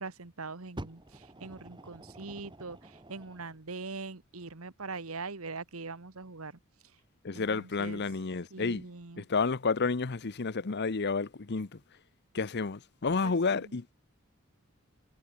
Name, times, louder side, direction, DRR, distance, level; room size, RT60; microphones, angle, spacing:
voice 1, 0.0-6.6 7.3-8.0 8.5-9.3 13.2-13.7, right 4 dB, 85° right, 1.6 m, -42 dB
Fire, 0.8-3.6 4.4-4.5, right 1 dB, 20° right, 2.2 m, -47 dB
voice 2, 7.2-8.8 9.2-11.8 12.3-13.9, left 4 dB, 50° left, 0.8 m, -30 dB
head